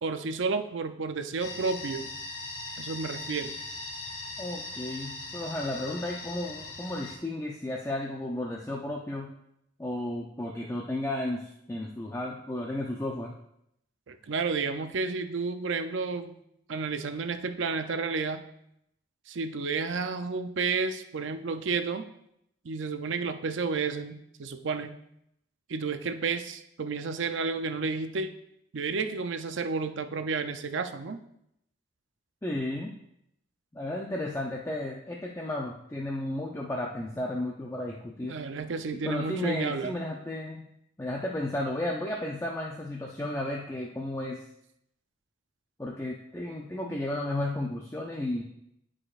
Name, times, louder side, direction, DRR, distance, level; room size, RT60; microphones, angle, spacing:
voice 1, 0.0-2.1 2.8-3.5 14.1-16.3 16.7-18.4 19.3-22.0 22.6-24.9 25.7-28.3 28.7-31.2 38.2-40.0, right 4 dB, 75° right, 8 dB, 0.5 m, -31 dB
sound 1, 1.4-7.2, left 3 dB, 80° left, 1.5 m, -40 dB
voice 2, 4.4-9.3 9.8-13.3 32.4-32.9 33.7-38.4 38.9-40.6 41.0-44.4 45.8-48.4, left 1 dB, 15° left, -1 dB, 0.5 m, -33 dB
12.5 x 5.0 x 2.5 m, 0.76 s
head